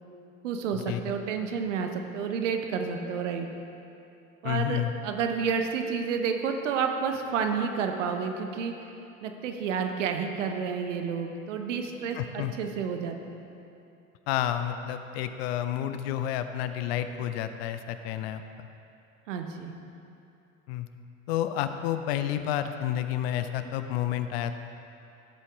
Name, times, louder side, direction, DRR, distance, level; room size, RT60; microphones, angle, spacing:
voice 1, 0.4-3.5 4.4-8.7 9.2-13.4 19.3-19.7, right 6 dB, 60° right, 5 dB, 1.1 m, -30 dB
voice 2, 4.4-4.9 12.1-12.5 14.3-18.4 20.7-20.9 21.3-24.5, left 11 dB, 45° left, 9 dB, 0.6 m, -30 dB
16.0 x 8.3 x 3.6 m, 2.7 s
figure-of-eight pair, 75°, 42 cm